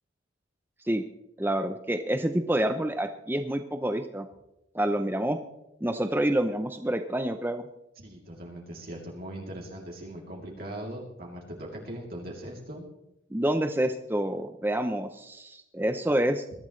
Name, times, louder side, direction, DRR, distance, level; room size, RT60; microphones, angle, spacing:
voice 1, 1.4-4.3 4.7-5.4 5.8-7.6 13.3-16.4, right 1 dB, 10° right, 7 dB, 0.6 m, -27 dB
voice 2, 8.0-12.9, right 1 dB, 50° right, -2 dB, 3.0 m, -40 dB
21.5 x 13.0 x 3.2 m, 0.87 s
head